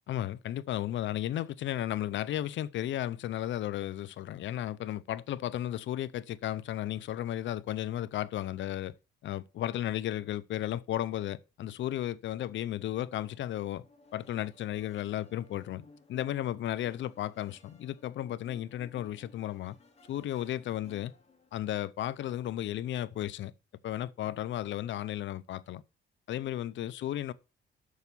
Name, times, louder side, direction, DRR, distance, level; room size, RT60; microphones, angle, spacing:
voice 1, 0.1-8.9 9.2-13.8 14.1-19.8 20.1-21.1 21.5-23.5 23.8-25.8 26.3-27.3, left 12 dB, 70° left, 0.6 m, -34 dB
sound 1, 13.2-21.5, left 3 dB, 30° left, 2.7 m, -58 dB
6.9 x 6.5 x 6.8 m
cardioid pair, 90°, 20 cm